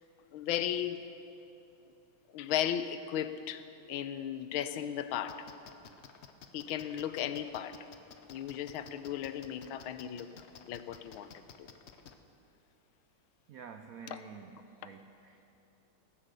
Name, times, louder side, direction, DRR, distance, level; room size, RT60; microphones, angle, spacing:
voice 1, 0.3-1.0 2.3-5.4 6.5-7.8 8.3-10.3 10.7-11.7 14.1-14.2, left 10 dB, 85° left, 11 dB, 1.5 m, -36 dB
sound 1, 5.3-12.1, left 7 dB, 70° left, 0.6 m, -52 dB
voice 2, 13.5-15.4, right 6 dB, 70° right, 7 dB, 0.8 m, -49 dB
19.0 x 9.9 x 6.7 m, 2.9 s
omnidirectional pair, 2.2 m